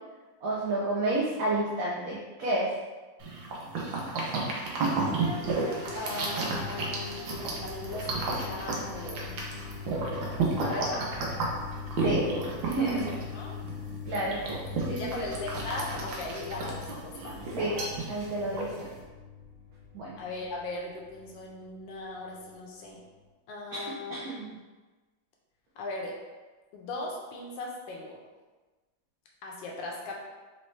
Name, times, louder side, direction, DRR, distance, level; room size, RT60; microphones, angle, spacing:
voice 1, 0.4-2.7 12.0-12.2 12.7-13.1 14.1-14.4 14.9-15.2 17.5-17.8 18.1-18.9 19.9-20.1 23.7-24.5, right 2 dB, 65° right, -6 dB, 1.0 m, -30 dB
sound 1, 3.2-19.0, right 3 dB, 80° right, 1.5 m, -32 dB
sound 2, 4.9-23.2, left 5 dB, 40° left, 0.6 m, -42 dB
voice 2, 5.9-9.4 10.6-11.1 13.0-13.6 14.9-17.4 20.2-23.0 23.5-24.5 25.8-26.1 26.7-28.2 29.4-30.1, left 2 dB, 80° left, -2 dB, 1.4 m, -38 dB
4.2 x 3.1 x 3.2 m, 1.3 s
omnidirectional pair, 2.1 m